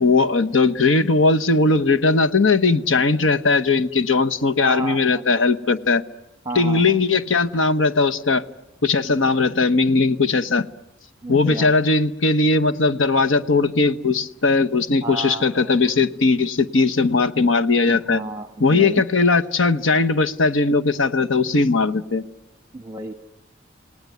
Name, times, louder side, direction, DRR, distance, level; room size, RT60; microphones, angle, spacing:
voice 1, 0.0-6.0 6.5-8.4 8.8-10.7 11.3-18.2 18.6-22.2, left 3 dB, 85° left, 9 dB, 1.0 m, -19 dB
voice 2, 4.6-5.4 6.4-6.9 9.1-9.4 11.2-11.7 15.0-16.0 17.9-19.1 22.7-23.1, right 2 dB, 20° right, 9 dB, 1.1 m, -32 dB
28.0 x 18.5 x 9.5 m, 0.90 s
head